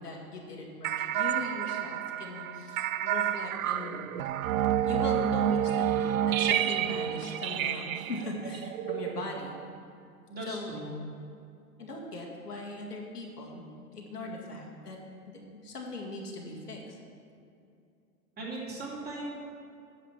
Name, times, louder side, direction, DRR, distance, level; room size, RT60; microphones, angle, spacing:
voice 1, 0.0-3.9 4.9-9.6 10.4-10.7 11.8-13.6 13.9-15.0 15.3-17.0, left 2 dB, 85° left, -2 dB, 2.1 m, -39 dB
sound 1, 0.8-9.8, right 10 dB, 65° right, 0.6 m, -29 dB
voice 2, 10.3-10.9 18.4-19.3, right 2 dB, 20° right, -5 dB, 2.7 m, -38 dB
10.0 x 6.7 x 6.0 m, 2.5 s
figure-of-eight pair, 110°, 46 cm